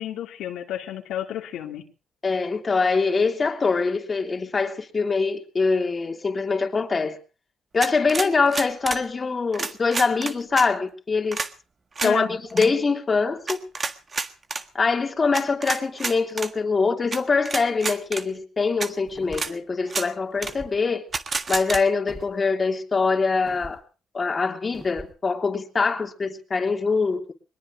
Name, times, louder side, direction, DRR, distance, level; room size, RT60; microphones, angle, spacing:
voice 1, 0.0-1.8 12.0-12.3, left 11 dB, 85° left, 2.8 m, -30 dB
voice 2, 2.2-7.2 7.7-11.4 12.0-13.6 14.7-21.1 21.5-23.8 24.1-27.3, left 4 dB, 35° left, 2.9 m, -23 dB
sound 1, 7.8-9.0 9.5-10.7 11.3-11.5 12.0-12.1 12.5-12.7 13.5-14.6 15.3-16.5 17.1-17.2 17.5-18.2 18.8-18.9 19.3-19.5 19.9-20.1 20.4-20.5 21.1-21.8, right 4 dB, 35° right, 1.6 m, -29 dB
sound 2, 19.1-19.6 20.4-20.8 22.1-22.3 23.5-23.8 24.7-25.2, right 1 dB, 15° right, 5.2 m, -42 dB
22.5 x 20.5 x 2.7 m
cardioid pair, 90°, 0 cm